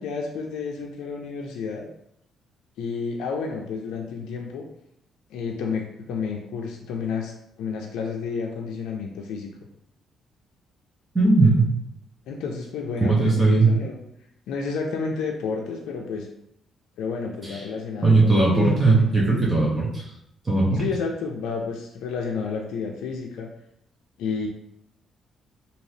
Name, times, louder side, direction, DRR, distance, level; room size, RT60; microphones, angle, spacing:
voice 1, 0.0-1.9 2.8-4.7 5.3-9.5 12.3-14.0 14.5-16.3 17.0-19.2 20.7-23.5 24.2-24.5, left 5 dB, 85° left, 1 dB, 0.4 m, -30 dB
voice 2, 11.1-11.7 13.0-13.7 18.0-20.0 20.5-20.8, right 3 dB, 25° right, -5 dB, 0.9 m, -18 dB
3.1 x 2.8 x 2.7 m, 0.78 s
cardioid pair, 90°, 0 cm